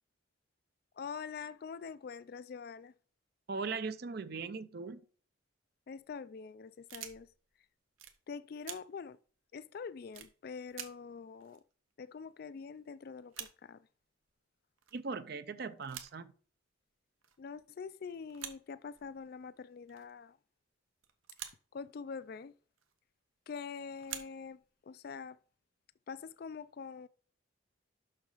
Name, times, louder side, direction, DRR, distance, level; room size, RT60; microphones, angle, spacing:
voice 1, 1.0-2.9 5.9-7.3 8.3-9.2 9.5-11.6 12.0-13.8 17.4-20.4 21.7-22.5 23.5-24.6 24.9-25.4 26.1-27.1, left 5 dB, 50° left, 0.3 m, -45 dB
voice 2, 3.5-5.0 14.9-16.3, right 4 dB, 50° right, 0.5 m, -39 dB
sound 1, 5.9-6.1 6.9-7.5 8.0-8.2 8.6-8.8 9.3-9.4 10.1-10.3 10.7-10.9 11.1-11.2 11.4-12.5 12.8-12.9 13.1-13.5 14.3-14.4 14.8-15.1 15.7-16.1 17.2-17.5 18.3-18.6 18.8-19.4 19.9-20.2 21.0-21.7 22.8-23.0 23.9-24.7, right 10 dB, 90° right, 1.1 m, -47 dB
6.6 x 6.3 x 4.8 m
head